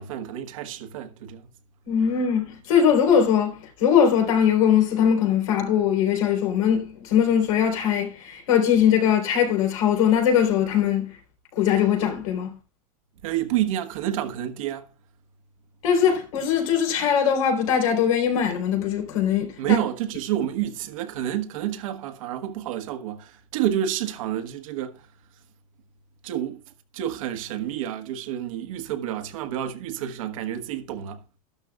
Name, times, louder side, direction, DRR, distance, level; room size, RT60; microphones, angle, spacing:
voice 1, 0.0-1.5 13.2-14.9 19.6-25.0 26.2-26.6 26.9-31.2, right 11 dB, 70° right, 1.4 m, -29 dB
voice 2, 1.9-11.1 11.6-12.5 15.8-19.8, left 8 dB, 75° left, 4.0 m, -21 dB
13.0 x 12.5 x 2.3 m
supercardioid pair, 155°, 18 cm